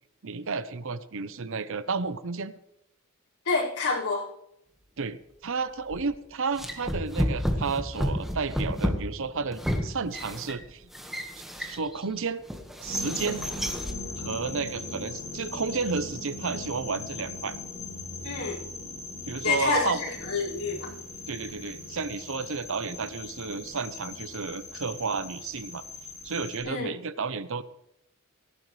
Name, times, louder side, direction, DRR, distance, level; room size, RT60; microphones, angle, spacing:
voice 1, 0.2-2.5 5.0-5.2 5.4-10.9 11.6-12.4 12.8-13.4 14.2-17.6 19.3-20.0 21.3-25.8 26.2-27.6, right 4 dB, 65° right, 14 dB, 0.8 m, -32 dB
voice 2, 3.4-4.3 18.2-18.6 19.4-20.9 26.6-26.9, left 3 dB, 90° left, -5 dB, 5.1 m, -28 dB
sound 1, 5.9-6.1 6.6-12.0 12.5-14.0, equal, ahead, 1.5 m, -31 dB
sound 2, 12.9-26.6, left 2 dB, 30° left, 7.0 m, -39 dB
17.5 x 15.0 x 3.3 m, 0.83 s
head